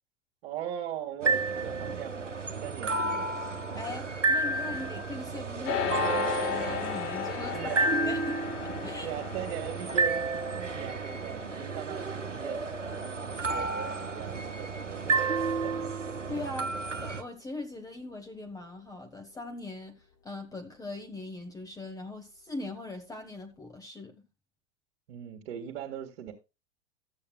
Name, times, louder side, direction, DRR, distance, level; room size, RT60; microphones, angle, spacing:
voice 1, 0.4-2.3 2.6-3.3 7.5-8.0 9.0-12.6 12.9-15.3 15.6-15.9 25.1-26.3, right 10 dB, 55° right, 2.0 m, -40 dB
sound 1, 1.2-17.2, right 3 dB, 85° right, 1.2 m, -31 dB
voice 2, 3.7-9.1 16.3-16.7 17.0-24.2, left 2 dB, 10° left, 1.3 m, -40 dB
sound 2, 5.6-15.2, left 7 dB, 40° left, 3.3 m, -36 dB
14.0 x 8.4 x 2.3 m
figure-of-eight pair, 90°, 36 cm